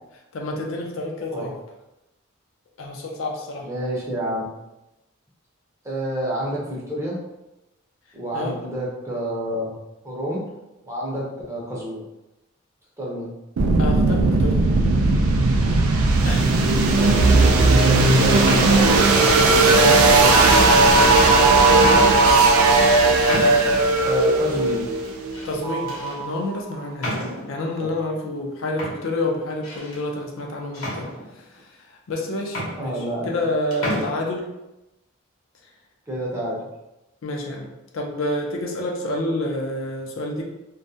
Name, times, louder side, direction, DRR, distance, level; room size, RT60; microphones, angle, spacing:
voice 1, 0.3-1.5 2.8-3.7 8.3-8.6 13.8-14.6 16.3-16.5 21.7-22.2 25.4-27.2 27.5-31.1 31.4-31.5 31.8-34.5 37.2-40.4, left 1 dB, 70° left, 0 dB, 0.4 m, -28 dB
voice 2, 3.6-4.4 5.8-7.3 8.1-9.8 10.0-10.5 10.8-12.0 13.0-13.3 16.8-20.8 24.0-24.8 27.8-27.9 32.8-33.4 33.8-34.1 36.1-36.7, equal, 15° right, -5 dB, 0.6 m, -29 dB
sound 1, 13.6-26.4, right 3 dB, 90° right, 0.3 m, -16 dB
sound 2, 15.6-16.1 16.9-17.5 18.3-19.3 20.0-20.1 20.5-21.0 21.5-21.6 22.2-22.4 23.3-23.9 25.0-25.5 25.9-26.2 27.0-27.6 28.4-28.5 28.8-30.0 30.7-31.6 32.2-32.3 32.5-33.5 33.7-34.1, equal, 85° left, 0.9 m, -32 dB
2.3 x 2.1 x 2.6 m, 0.95 s
head